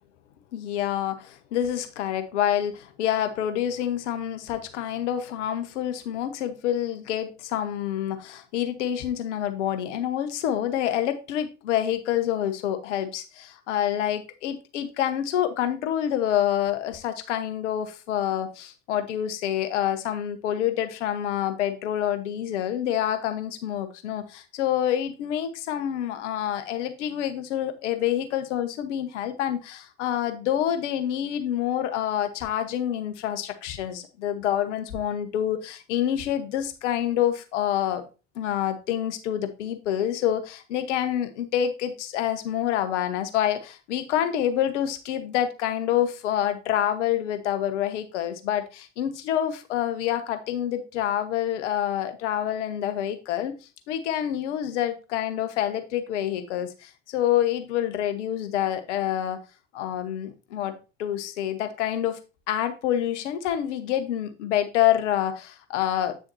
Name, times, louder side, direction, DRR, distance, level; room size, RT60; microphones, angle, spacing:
voice 1, 0.5-38.0 38.3-53.5 53.9-59.4 59.7-62.2 62.5-66.2, left 11 dB, 75° left, 1.2 m, -27 dB
8.7 x 6.2 x 2.7 m
hypercardioid pair, 65°, 36 cm